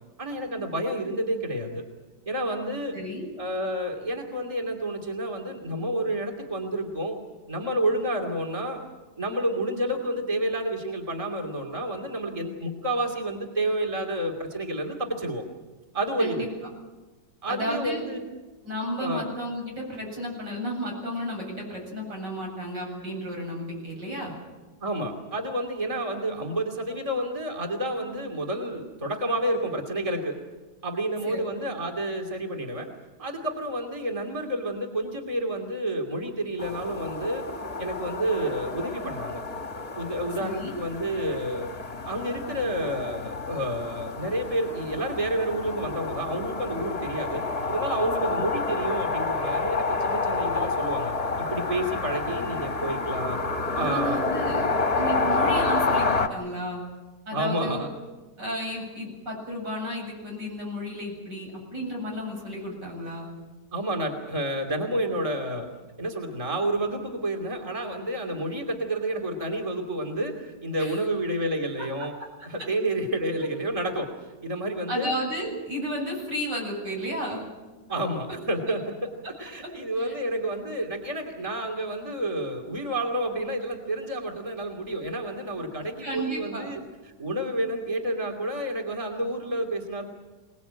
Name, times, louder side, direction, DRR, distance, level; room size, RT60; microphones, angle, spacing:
voice 1, 0.2-1.8 2.3-3.0 3.4-7.2 7.5-8.8 9.2-15.4 15.9-16.5 17.4-18.3 19.0-19.2 24.8-30.3 30.8-32.9 33.2-37.5 37.8-39.4 39.9-41.7 42.0-51.1 51.4-53.4 53.7-54.2 57.3-57.9 63.7-65.7 66.0-72.1 72.4-75.1 77.9-86.8 87.0-90.1, right 1 dB, 20° right, 2 dB, 2.7 m, -30 dB
voice 2, 2.9-3.3 16.2-16.5 17.5-18.0 18.6-24.4 31.2-31.4 40.4-40.8 48.4-48.5 53.8-56.8 57.3-57.8 58.4-63.3 70.8-71.0 74.9-77.4 80.0-80.1 86.0-86.7, equal, 80° right, -1 dB, 8.9 m, -32 dB
sound 1, 36.6-56.3, left 3 dB, 20° left, 1.6 m, -29 dB
26.0 x 19.5 x 8.9 m, 1.2 s
omnidirectional pair, 1.9 m